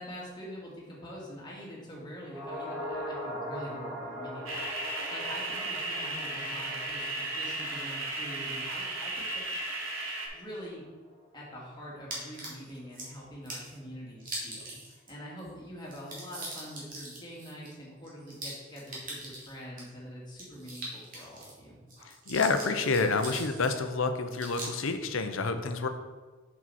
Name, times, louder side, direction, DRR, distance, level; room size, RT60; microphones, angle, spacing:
voice 1, 0.0-9.6 10.3-10.8 11.3-21.8, equal, 20° left, -5 dB, 2.0 m, -44 dB
sound 1, 2.3-10.7 11.0-11.1, equal, 20° right, 1.8 m, -42 dB
sound 2, 4.5-10.3, right 2 dB, 80° right, 1.4 m, -35 dB
sound 3, 12.1-13.1 13.5-13.7 14.2-15.1 15.4-15.5 15.8-19.8 20.3-21.6 21.9-23.8 24.3-24.9, right 2 dB, 40° right, 2.2 m, -41 dB
voice 2, 22.3-25.9, left 4 dB, 75° left, 8 dB, 0.7 m, -28 dB
7.4 x 5.9 x 4.1 m, 1.4 s
head